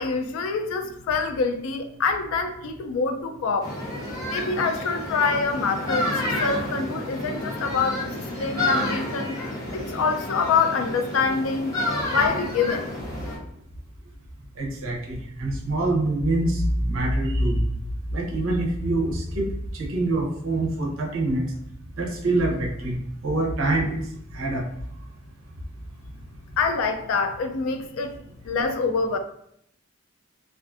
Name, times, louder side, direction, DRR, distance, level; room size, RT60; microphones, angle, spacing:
voice 1, 0.0-3.7 4.3-8.1 8.4-9.3 9.7-11.7 12.1-12.9 26.6-28.2 28.5-29.2, left 4 dB, 85° left, 7 dB, 0.3 m, -25 dB
sound 1, 3.6-13.4, left 1 dB, 15° left, 0.6 m, -30 dB
voice 2, 14.6-17.6 18.1-21.5 22.0-24.0 24.3-24.7, right 2 dB, 75° right, 0 dB, 0.6 m, -25 dB
2.4 x 2.4 x 2.4 m, 0.71 s
head